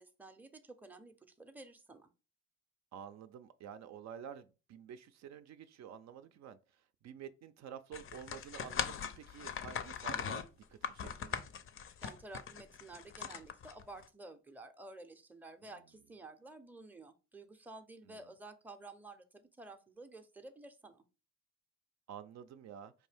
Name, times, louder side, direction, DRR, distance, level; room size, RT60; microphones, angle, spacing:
voice 1, 0.0-2.1 12.0-21.1, right 2 dB, 5° right, 0.5 m, -52 dB
voice 2, 2.9-6.6 7.0-11.4 18.0-18.2 22.1-22.9, right 8 dB, 65° right, 0.4 m, -50 dB
sound 1, 7.9-14.0, left 7 dB, 45° left, 0.5 m, -40 dB
4.7 x 2.6 x 3.3 m
cardioid pair, 90°, 30 cm